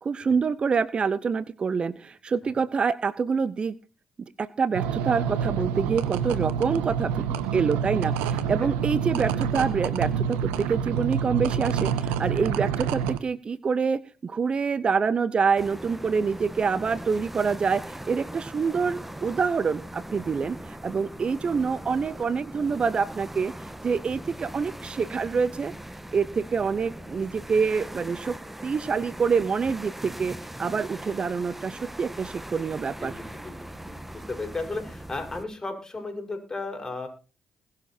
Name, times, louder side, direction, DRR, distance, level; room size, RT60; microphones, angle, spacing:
voice 1, 0.0-3.7 4.4-7.3 7.5-25.7 26.1-28.4 28.6-33.1, right 5 dB, 45° right, 18 dB, 0.7 m, -26 dB
sound 1, 4.7-13.2, right 8 dB, 85° right, 1.0 m, -27 dB
sound 2, 15.6-35.5, right 1 dB, 10° right, 1.3 m, -40 dB
voice 2, 33.0-37.1, left 3 dB, 25° left, 4 dB, 5.7 m, -35 dB
21.0 x 7.4 x 4.4 m, 0.35 s
supercardioid pair, 55°, 2 cm